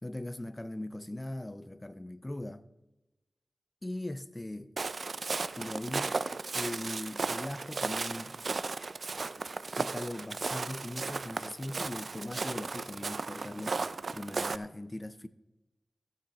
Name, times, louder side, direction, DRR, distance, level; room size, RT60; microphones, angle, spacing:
voice 1, 0.0-2.7 3.8-4.7 5.6-6.2 6.5-8.4 9.8-15.3, left 1 dB, 20° left, 0.6 m, -40 dB
Walk footsteps, 4.8-14.6, right 4 dB, 65° right, 0.5 m, -35 dB
15.0 x 9.4 x 4.2 m
wide cardioid pair, 70°, 0 cm